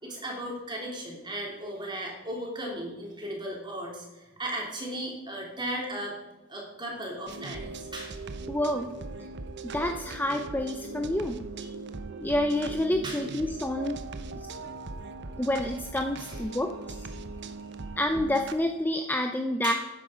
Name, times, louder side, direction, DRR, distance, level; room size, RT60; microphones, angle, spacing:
voice 1, 0.0-6.2 6.5-8.2 11.6-11.7 13.0-13.3 16.3-16.4 19.6-19.7, right 1 dB, 20° right, -1 dB, 3.3 m, -36 dB
sound 1, 7.3-18.5, right 3 dB, 55° right, 0.9 m, -40 dB
voice 2, 8.5-8.9 9.6-11.4 12.2-14.0 14.4-14.5 15.4-17.1 18.0-19.7, left 1 dB, 10° left, 5 dB, 0.6 m, -28 dB
13.0 x 9.8 x 5.1 m, 1.1 s
head